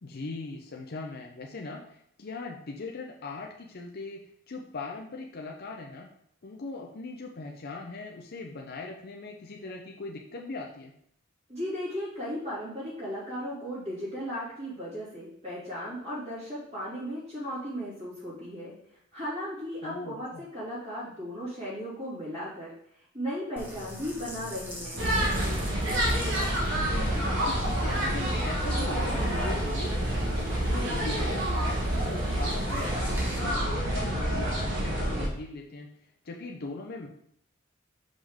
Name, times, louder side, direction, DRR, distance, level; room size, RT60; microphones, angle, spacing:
voice 1, 0.0-4.2 4.5-6.1 6.4-10.9 19.8-20.4 26.6-35.9 36.2-37.1, left 3 dB, 50° left, 0 dB, 0.6 m, -40 dB
voice 2, 11.5-18.7 19.1-22.7 23.1-25.1, equal, 35° right, -10 dB, 2.6 m, -36 dB
sound 1, 23.6-33.4, equal, 10° right, 1.5 m, -43 dB
sound 2, 25.0-35.3, right 1 dB, 65° right, 1.3 m, -28 dB
5.3 x 5.2 x 3.6 m, 0.70 s
head